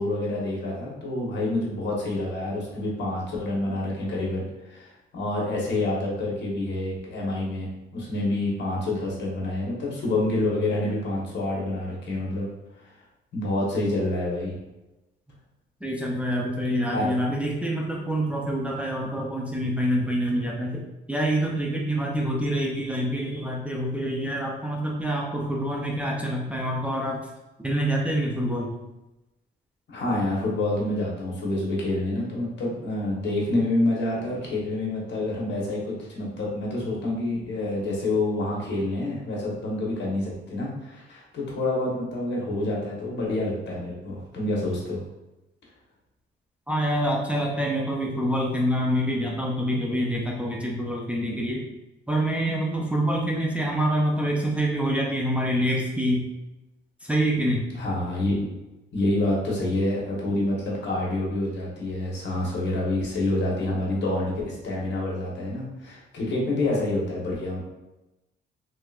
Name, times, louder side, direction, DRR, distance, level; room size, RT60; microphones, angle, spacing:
voice 1, 0.0-12.5 12.8-12.9 13.3-14.6 16.9-17.1 29.9-45.0 57.7-58.6 58.9-67.6, left 2 dB, 65° left, -4 dB, 1.2 m, -27 dB
voice 2, 15.8-27.2 27.6-28.7 46.7-51.6 52.1-56.3 57.0-57.7, equal, 5° right, -2 dB, 0.5 m, -26 dB
3.1 x 2.8 x 2.4 m, 0.99 s
cardioid pair, 90°, 20 cm